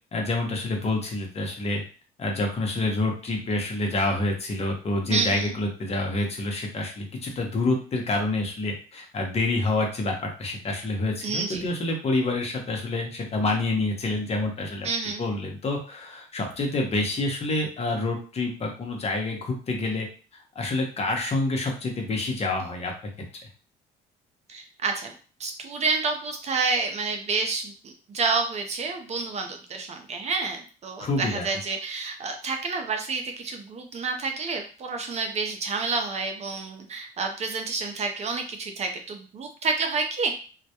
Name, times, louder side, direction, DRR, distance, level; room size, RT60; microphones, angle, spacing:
voice 1, 0.1-1.8 2.2-14.9 15.2-20.1 20.6-22.9 31.0-31.5, left 2 dB, 40° left, 2 dB, 0.7 m, -27 dB
voice 2, 5.1-5.5 11.2-11.7 14.8-15.2 24.5-25.1 25.4-40.4, right 4 dB, 40° right, 4 dB, 0.5 m, -29 dB
2.2 x 2.1 x 2.8 m, 0.37 s
cardioid pair, 90°, 16 cm